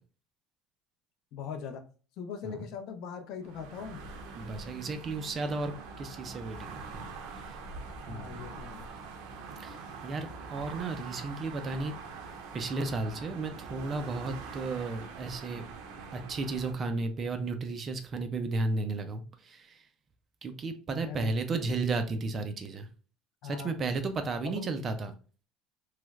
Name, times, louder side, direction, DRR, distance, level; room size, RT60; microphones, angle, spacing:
voice 1, 1.3-1.9 2.2-4.1 8.1-8.9 20.9-21.4 23.4-23.8 24.4-24.9, left 7 dB, 50° left, 7 dB, 0.5 m, -41 dB
sound 1, 3.4-16.7, right 4 dB, 75° right, 0.6 m, -44 dB
voice 2, 4.3-7.1 7.3-7.4 8.1-8.4 9.6-11.9 12.5-15.6 16.1-19.8 20.4-22.9 23.4-25.1, right 3 dB, 25° right, 8 dB, 0.3 m, -34 dB
3.1 x 3.0 x 2.3 m, 0.38 s
cardioid pair, 175°, 0 cm